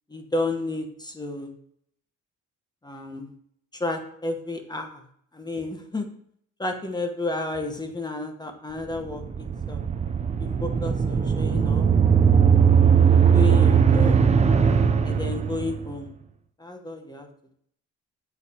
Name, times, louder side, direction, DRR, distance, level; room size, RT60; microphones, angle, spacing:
voice 1, 0.1-1.5 2.8-3.3 3.7-5.0 5.3-6.1 6.6-9.8 10.4-11.9 12.5-12.8 13.3-14.2 15.0-16.1 16.6-17.3, left 2 dB, 15° left, 5 dB, 1.0 m, -32 dB
sound 1, 9.0-15.9, right 7 dB, 25° right, 0.4 m, -19 dB
8.3 x 4.0 x 2.8 m, 0.67 s
cardioid pair, 90°, 30 cm